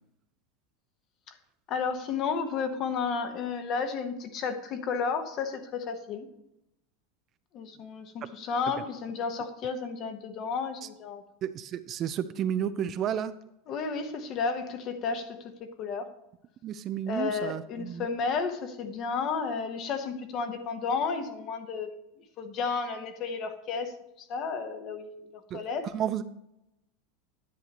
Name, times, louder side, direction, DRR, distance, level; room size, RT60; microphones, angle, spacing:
voice 1, 1.7-6.3 7.5-11.2 13.7-15.5 15.8-16.1 17.1-22.0 22.4-25.9, left 5 dB, 40° left, 8 dB, 1.1 m, -32 dB
voice 2, 11.4-13.3 16.6-18.1 25.5-25.6 25.9-26.2, right 9 dB, 35° right, 12 dB, 0.4 m, -32 dB
10.5 x 8.1 x 3.0 m, 0.84 s
supercardioid pair, 135°, 0 cm